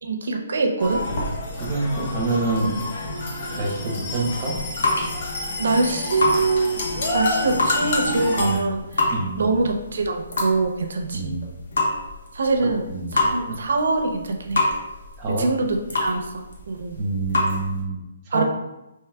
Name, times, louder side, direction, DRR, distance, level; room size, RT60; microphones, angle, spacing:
voice 1, 0.0-1.1 5.6-9.1 9.4-11.4 12.3-12.9 13.1-14.6 15.3-17.0 18.3-18.4, right 3 dB, 70° right, 3 dB, 0.6 m, -24 dB
sound 1, 0.8-8.6, left 2 dB, 45° left, 0.7 m, -28 dB
voice 2, 1.5-2.9 3.6-4.6 8.4-8.7 9.0-9.6 11.1-11.5 12.9-13.2 13.5-13.6 15.2-15.5 17.0-18.4, right 2 dB, 25° right, -3 dB, 0.8 m, -27 dB
sound 2, 4.3-17.8, left 2 dB, 80° left, 0.9 m, -28 dB
4.6 x 3.1 x 2.2 m, 0.96 s
hypercardioid pair, 165°, 0 cm